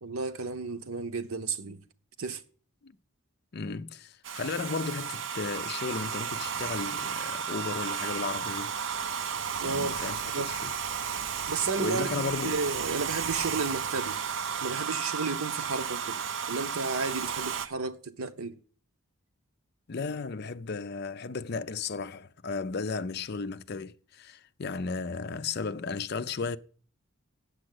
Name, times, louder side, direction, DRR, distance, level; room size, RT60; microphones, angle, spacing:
voice 1, 0.0-1.8 2.2-2.4 9.6-10.0 10.3-10.5 11.5-14.2 14.6-16.2 16.5-18.6, right 4 dB, 80° right, 0.9 m, -33 dB
voice 2, 3.5-8.7 9.6-10.7 11.8-12.6 19.9-26.6, left 4 dB, 50° left, 0.5 m, -34 dB
Domestic sounds home sounds, 4.2-17.7, right 7 dB, 60° right, 0.5 m, -33 dB
8.6 x 7.5 x 7.7 m
head